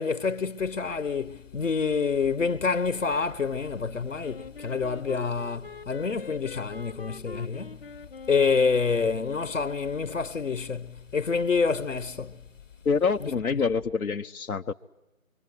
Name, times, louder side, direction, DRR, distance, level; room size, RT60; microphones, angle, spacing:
voice 1, 0.0-7.8 8.3-12.4 13.5-13.6, left 5 dB, 65° left, 1.2 m, -27 dB
sound 1, 0.6-13.9, left 8 dB, 15° left, 0.9 m, -51 dB
Wind instrument woodwind instrument, 4.2-9.3, left 4 dB, 40° left, 0.9 m, -44 dB
voice 2, 12.8-14.7, left 5 dB, 90° left, 1.0 m, -26 dB
25.0 x 25.0 x 9.5 m
figure-of-eight pair, 165°, 42 cm